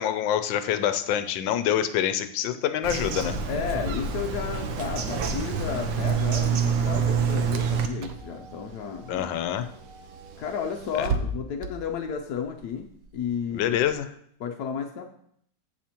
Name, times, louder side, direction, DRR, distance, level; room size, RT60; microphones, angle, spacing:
voice 1, 0.0-3.4 9.1-9.7 11.0-11.1 13.5-14.1, left 10 dB, 85° left, 11 dB, 1.3 m, -26 dB
Bird vocalization bird call bird song, 2.8-7.9, right 6 dB, 85° right, 1.5 m, -26 dB
voice 2, 3.5-9.3 10.4-13.8 14.4-15.0, left 7 dB, 70° left, 2 dB, 1.1 m, -32 dB
Car / Engine, 6.5-13.9, right 4 dB, 65° right, 0.9 m, -39 dB
14.5 x 5.0 x 2.9 m, 0.69 s
omnidirectional pair, 2.0 m